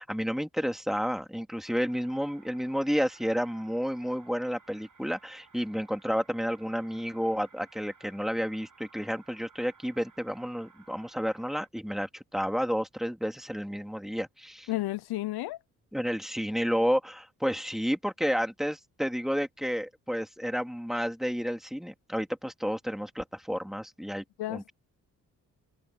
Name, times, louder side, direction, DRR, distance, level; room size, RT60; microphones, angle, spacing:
voice 1, 0.0-14.7 15.9-24.7, equal, ahead, 3.1 m, -31 dB
sound 1, 1.6-11.7, right 5 dB, 55° right, 7.4 m, -58 dB
voice 2, 14.7-15.6 24.4-24.7, left 16 dB, 80° left, 0.7 m, -32 dB
supercardioid pair, 50°, 37 cm